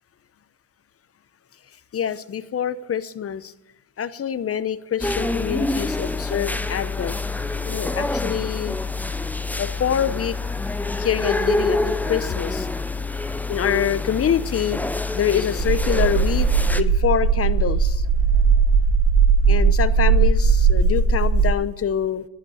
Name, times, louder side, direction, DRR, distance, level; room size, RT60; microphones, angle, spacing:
voice 1, 1.9-3.5 4.0-7.1 7.7-8.8 9.6-10.3 11.0-12.7 13.5-14.8 15.1-16.5 16.8-18.1 19.5-22.3, left 9 dB, 35° left, 15 dB, 0.8 m, -25 dB
sound 1, 5.0-16.8, left 3 dB, 5° left, 0.5 m, -26 dB
sound 2, 15.6-21.5, right 5 dB, 40° right, 0.9 m, -18 dB
11.0 x 8.2 x 9.0 m, 0.88 s
cardioid pair, 100°, 39 cm